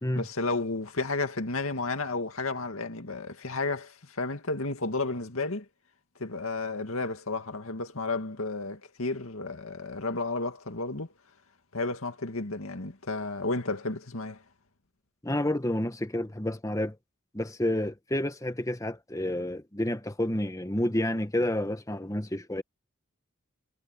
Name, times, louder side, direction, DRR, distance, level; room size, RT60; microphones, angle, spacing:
voice 1, 0.2-5.7 6.2-11.1 11.7-14.4, left 3 dB, 85° left, 2.1 m, -32 dB
voice 2, 15.2-17.0 17.3-22.6, left 1 dB, 15° left, 1.3 m, -29 dB
head